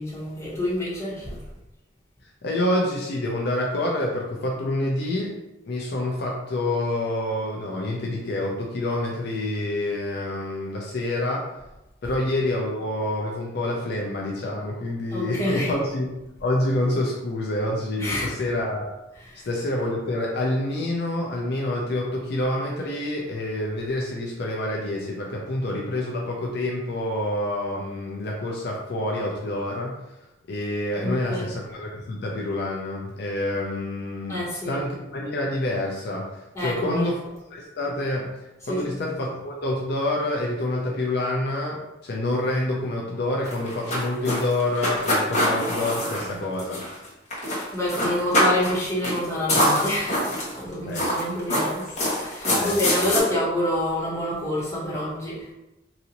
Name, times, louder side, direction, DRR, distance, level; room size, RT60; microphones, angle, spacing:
voice 1, 0.0-1.4 15.1-15.7 18.0-18.3 19.2-19.5 31.0-31.5 34.3-34.8 36.5-37.1 38.6-38.9 46.2-46.3 47.7-55.5, left 1 dB, 15° left, -9 dB, 1.4 m, -27 dB
voice 2, 2.4-5.3 5.6-11.5 12.0-16.1 16.4-18.9 19.5-30.0 30.5-37.2 37.5-38.3 38.7-46.8 50.9-51.2 52.6-53.1, left 1 dB, 60° left, -1 dB, 0.5 m, -27 dB
sound 1, 43.4-47.1 47.3-47.6 47.9-48.8 49.0-49.2 49.5-50.6 50.9-53.2, left 1 dB, 40° left, 1.1 m, -24 dB
4.0 x 2.6 x 2.9 m, 0.96 s
head